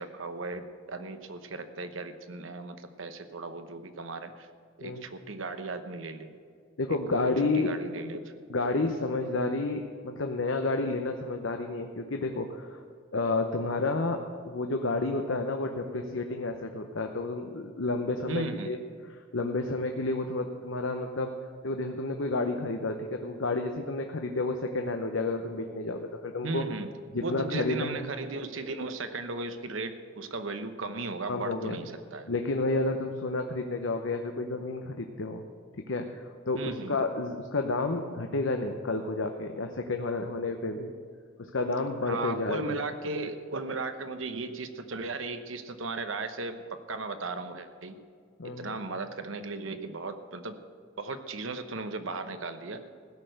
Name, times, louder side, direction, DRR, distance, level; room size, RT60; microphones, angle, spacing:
voice 1, 0.0-4.5 4.8-6.3 6.9-8.3 18.3-18.7 26.4-26.9 27.2-32.3 36.5-37.0 42.0-47.9 48.4-50.5 51.0-52.9, right 3 dB, 80° right, 9 dB, 1.0 m, -36 dB
voice 2, 6.8-7.7 8.5-12.8 13.1-18.8 19.3-21.3 21.6-26.6 27.1-28.0 31.3-31.8 32.3-35.4 35.9-40.9 41.4-42.7 48.4-48.8, left 3 dB, 75° left, 4 dB, 0.8 m, -30 dB
16.0 x 6.6 x 7.9 m, 2.1 s
head